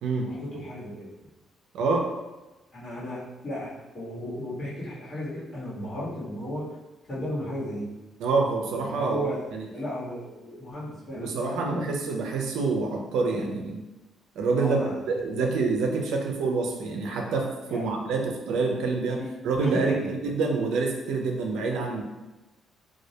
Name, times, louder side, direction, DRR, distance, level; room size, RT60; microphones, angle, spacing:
voice 1, 0.2-1.1 2.7-6.7 7.1-7.9 8.8-11.9 14.5-15.0 17.7-17.8 19.2-20.1 21.7-21.8, equal, 50° left, -8 dB, 1.1 m, -34 dB
voice 2, 1.7-2.1 8.2-9.2 9.5-9.7 11.1-13.8 14.4-14.8 15.1-22.0, right 4 dB, 85° right, 2 dB, 0.4 m, -27 dB
2.2 x 2.1 x 2.7 m, 1.1 s
cardioid pair, 90°, 0 cm